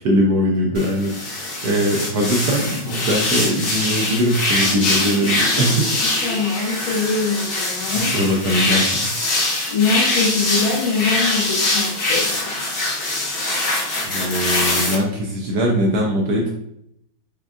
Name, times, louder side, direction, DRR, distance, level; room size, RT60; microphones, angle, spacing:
voice 1, 0.0-5.9 8.0-9.1 14.0-16.5, equal, 75° right, -1 dB, 0.9 m, -21 dB
sound 1, 0.7-14.9, left 2 dB, 55° left, 0.6 m, -23 dB
voice 2, 6.0-8.1 9.7-12.6, left 4 dB, 90° left, -4 dB, 2.0 m, -23 dB
5.2 x 2.3 x 2.3 m, 0.74 s
omnidirectional pair, 2.1 m